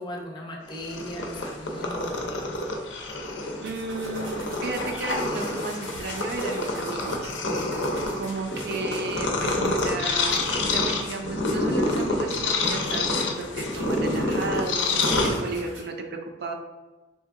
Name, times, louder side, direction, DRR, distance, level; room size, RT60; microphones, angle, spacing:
voice 1, 0.0-2.4, equal, 25° left, 0 dB, 0.5 m, -37 dB
Purr, 0.7-15.8, left 2 dB, 75° left, 0.5 m, -27 dB
voice 2, 3.6-7.3 8.1-16.5, right 3 dB, 60° right, 3 dB, 0.4 m, -34 dB
sound 1, 3.6-10.4 10.8-11.0 11.3-11.4 13.3-15.8, right 2 dB, 85° right, 0.7 m, -46 dB
3.3 x 2.7 x 2.4 m, 1.2 s
head